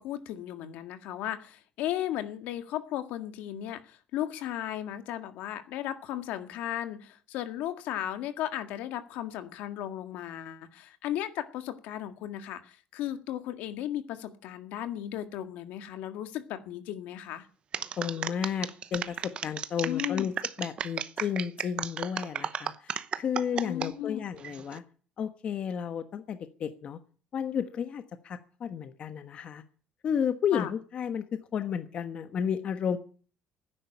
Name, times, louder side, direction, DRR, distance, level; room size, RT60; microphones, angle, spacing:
voice 1, 0.0-17.5 19.9-20.3 23.5-24.2 30.5-30.7, left 12 dB, 85° left, 8 dB, 1.8 m, -35 dB
sound 1, 17.7-23.9 24.4-24.8, right 8 dB, 40° right, 0.9 m, -34 dB
voice 2, 18.0-20.3 20.6-24.8 25.2-27.0 27.3-29.6 30.0-33.0, left 8 dB, 45° left, 9 dB, 1.2 m, -32 dB
11.5 x 10.0 x 10.0 m, 0.42 s
cardioid pair, 125°, 3 cm